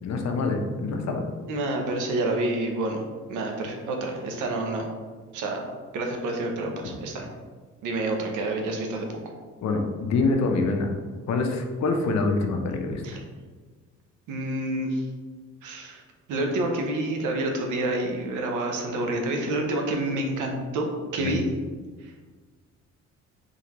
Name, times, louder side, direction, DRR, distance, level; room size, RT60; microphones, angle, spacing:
voice 1, 0.0-1.2 9.6-11.0 11.3-13.0 21.2-21.4, left 3 dB, 60° left, 3 dB, 0.7 m, -25 dB
voice 2, 1.5-3.0 3.3-4.9 5.3-5.7 5.9-7.3 7.8-9.1 13.0-13.2 14.3-15.0 15.6-16.0 16.3-21.4 22.0-22.1, right 2 dB, 85° right, 2 dB, 0.8 m, -28 dB
3.8 x 3.4 x 3.0 m, 1.4 s
cardioid pair, 90°, 30 cm